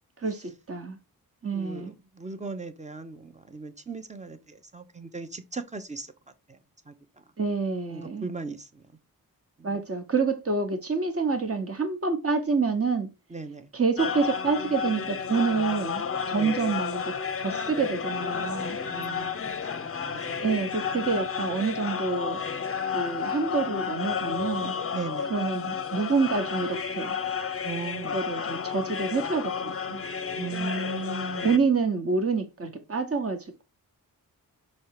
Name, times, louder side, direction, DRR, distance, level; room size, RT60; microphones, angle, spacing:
voice 1, 0.2-1.0 1.4-1.9 7.4-8.3 9.6-13.1 13.7-17.0 17.4-18.8 20.4-22.4 22.9-24.7 25.3-27.2 28.1-30.0 31.4-33.6, right 4 dB, 40° right, 1.2 m, -27 dB
voice 2, 1.5-6.1 6.5-6.6 6.9-7.0 7.9-8.8 9.6-9.8 13.3-13.7 16.3-16.7 18.9-19.3 19.7-20.4 24.9-25.3 27.6-28.2 30.3-31.6, right 3 dB, 20° right, 0.8 m, -37 dB
sound 1, 14.0-31.6, left 6 dB, 40° left, 0.6 m, -32 dB
6.4 x 3.2 x 4.6 m
wide cardioid pair, 140°, 36 cm